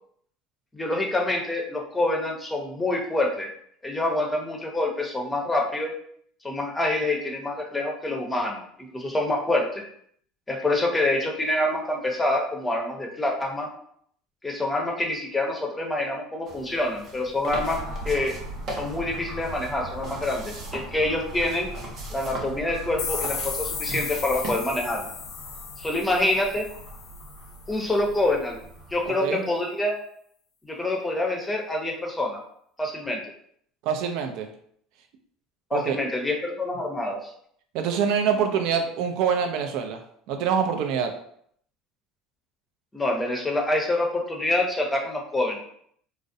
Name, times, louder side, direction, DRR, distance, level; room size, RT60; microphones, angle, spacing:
voice 1, 0.7-3.5 3.8-5.9 6.4-9.8 10.5-13.7 14.4-17.8 18.0-18.3 18.7-21.7 22.1-25.1 25.8-26.7 27.7-28.6 28.9-30.0 30.6-32.4 32.8-33.2 35.7-37.3 42.9-45.6, left 2 dB, 15° left, 1 dB, 0.6 m, -26 dB
sound 1, 16.5-24.6, right 2 dB, 50° right, 0.7 m, -40 dB
sound 2, 17.5-29.1, right 1 dB, 85° right, 0.9 m, -39 dB
sound 3, 23.0-27.7, left 5 dB, 70° left, 0.4 m, -35 dB
voice 2, 33.8-34.5 35.7-36.0 37.7-40.0 40.3-41.1, right 7 dB, 70° right, 6 dB, 0.4 m, -25 dB
2.4 x 2.0 x 2.6 m, 0.66 s
supercardioid pair, 90°, 0 cm